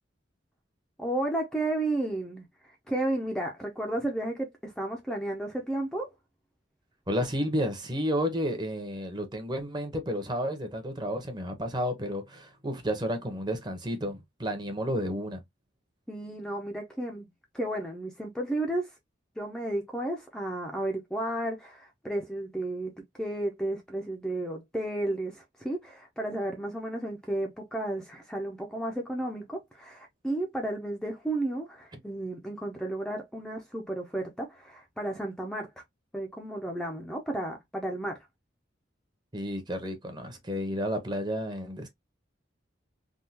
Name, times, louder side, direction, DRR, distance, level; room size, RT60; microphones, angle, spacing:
voice 1, 1.0-6.1 16.1-17.3 17.5-19.0 19.4-35.8 36.1-38.3, right 1 dB, 5° left, 0.5 m, -33 dB
voice 2, 7.1-15.4 39.3-41.9, equal, 25° right, 0.8 m, -31 dB
3.6 x 2.3 x 2.7 m
head